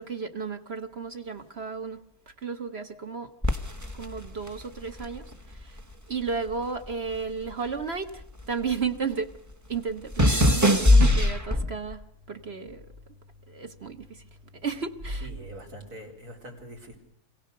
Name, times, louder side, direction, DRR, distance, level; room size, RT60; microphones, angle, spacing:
voice 1, 0.0-2.0 2.3-3.3 3.9-5.8 6.1-9.3 9.7-12.9 13.5-14.2 14.5-15.3, right 5 dB, 45° right, 7 dB, 1.2 m, -33 dB
sound 1, 3.4-5.9 6.2-8.9 9.1-11.9 12.7-13.0, left 1 dB, 15° right, 1.0 m, -23 dB
voice 2, 15.2-17.0, right 1 dB, 75° right, 0 dB, 4.5 m, -43 dB
26.5 x 17.0 x 6.7 m, 0.74 s
omnidirectional pair, 1.6 m